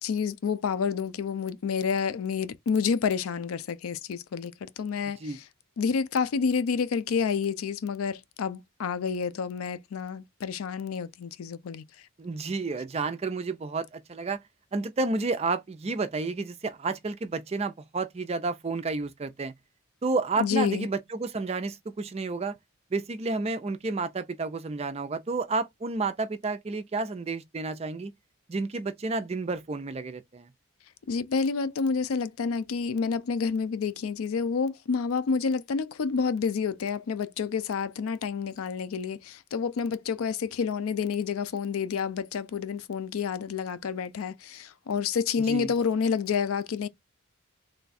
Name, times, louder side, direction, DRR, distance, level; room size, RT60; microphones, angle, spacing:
voice 1, 0.0-5.4 5.8-11.8 20.4-20.9 31.1-46.9, left 6 dB, 75° left, 0.4 m, -29 dB
voice 2, 12.2-14.4 14.7-19.5 20.0-22.6 22.9-28.1 28.5-30.5 45.5-45.7, right 3 dB, 30° right, 0.4 m, -31 dB
3.3 x 2.3 x 4.0 m
head